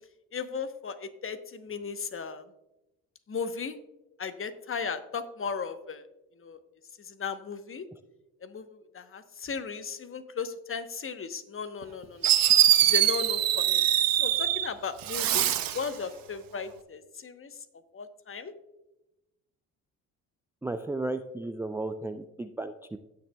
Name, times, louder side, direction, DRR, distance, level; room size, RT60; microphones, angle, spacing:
voice 1, 0.3-2.4 3.3-3.8 4.2-6.0 6.4-6.6 7.0-7.9 8.4-12.3 12.8-17.6 17.9-18.5, left 5 dB, 30° left, 11 dB, 1.0 m, -36 dB
Fireworks, 11.8-11.9 12.2-14.7 15.0-15.9, right 12 dB, 55° right, 1.0 m, -23 dB
voice 2, 20.6-23.0, right 2 dB, 5° right, 9 dB, 0.4 m, -34 dB
17.5 x 6.6 x 2.3 m, 0.96 s
hypercardioid pair, 50°, 40 cm